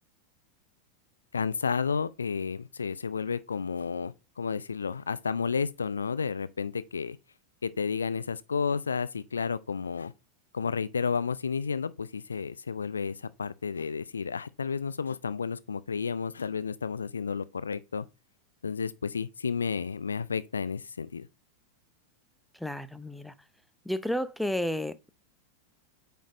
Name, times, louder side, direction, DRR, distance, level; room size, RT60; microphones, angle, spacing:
voice 1, 1.3-7.2 7.6-10.1 10.5-18.0 18.6-21.3, left 5 dB, 75° left, 0.4 m, -31 dB
voice 2, 22.6-23.3 23.9-24.9, left 1 dB, ahead, 0.5 m, -31 dB
8.7 x 5.1 x 2.5 m
figure-of-eight pair, 90°, 0 cm